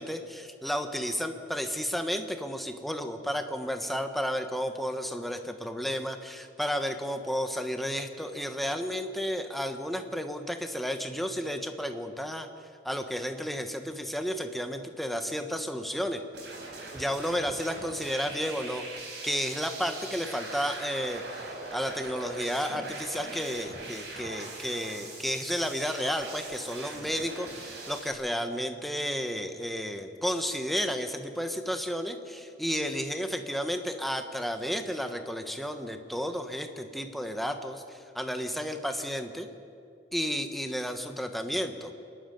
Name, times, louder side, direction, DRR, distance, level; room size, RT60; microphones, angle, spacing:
voice 1, 0.0-12.5 12.8-16.2 16.9-18.8 19.2-21.4 21.7-39.5 40.1-41.9, equal, ahead, 6 dB, 1.2 m, -32 dB
sound 1, 16.3-28.1, right 3 dB, 70° right, 4.4 m, -41 dB
26.5 x 11.5 x 9.2 m, 2.4 s
head